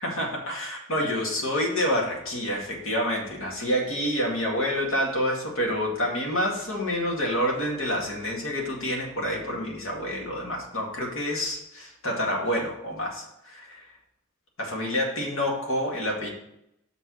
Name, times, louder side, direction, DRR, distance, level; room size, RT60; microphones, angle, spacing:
voice 1, 0.0-13.8 14.6-16.3, equal, 85° left, -1 dB, 2.1 m, -28 dB
6.7 x 4.4 x 6.3 m, 0.80 s
head